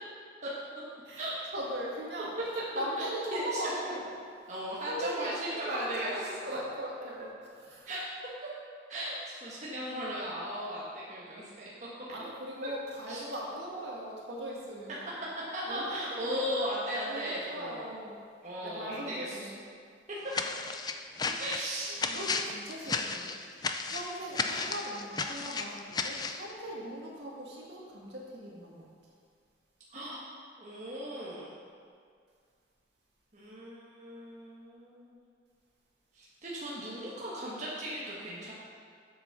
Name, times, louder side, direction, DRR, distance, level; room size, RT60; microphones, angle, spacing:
voice 1, 1.0-2.3 2.8-4.1 4.8-7.3 7.6-7.9 12.1-15.0 15.7-16.8 17.1-18.2 18.6-19.6 21.2-21.4 22.0-23.3 23.8-28.9, equal, 65° right, -4 dB, 2.2 m, -39 dB
voice 2, 3.0-3.7 4.5-6.1 6.5-6.6 7.8-8.0 8.4-8.5 8.9-11.7 12.6-12.7 13.1-13.2 15.5-17.9 18.4-19.5 20.1-20.3 21.4-22.0 29.9-30.3 30.6-31.6 33.3-35.2 36.1-38.5, equal, 40° right, -7 dB, 1.5 m, -37 dB
sound 1, 20.3-26.4, left 4 dB, 20° left, 0.4 m, -34 dB
8.1 x 7.3 x 6.0 m, 2.2 s
head